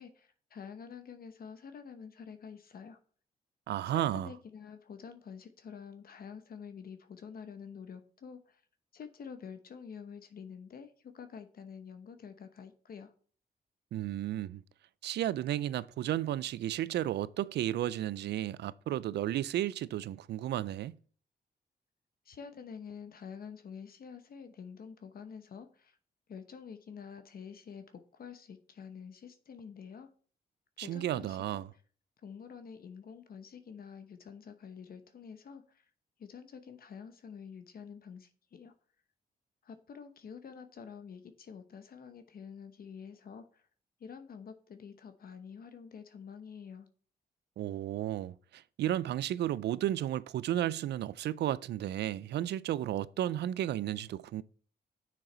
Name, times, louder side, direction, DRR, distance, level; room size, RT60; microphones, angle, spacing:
voice 1, 0.0-3.0 3.9-8.6 8.9-13.1 22.2-26.0 26.3-30.1 30.8-31.7 32.2-35.8 36.2-38.7 39.6-43.7 44.0-46.9, left 6 dB, 60° left, 0.9 m, -48 dB
voice 2, 3.7-4.3 13.9-14.6 15.0-21.0 30.8-31.7 47.6-54.4, right 12 dB, 75° right, 0.4 m, -33 dB
6.7 x 6.3 x 4.3 m
cardioid pair, 75°, 17 cm